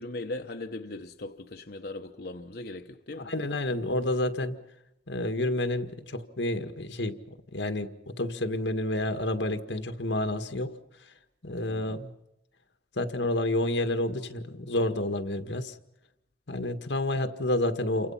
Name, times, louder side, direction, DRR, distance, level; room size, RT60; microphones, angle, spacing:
voice 1, 0.0-3.3 11.6-12.0, left 2 dB, 60° left, 1.0 m, -39 dB
voice 2, 3.2-4.6 5.1-7.2 7.5-10.7 11.4-12.1 13.0-15.7 16.5-18.1, left 1 dB, 85° left, 1.8 m, -29 dB
29.5 x 25.5 x 5.8 m
head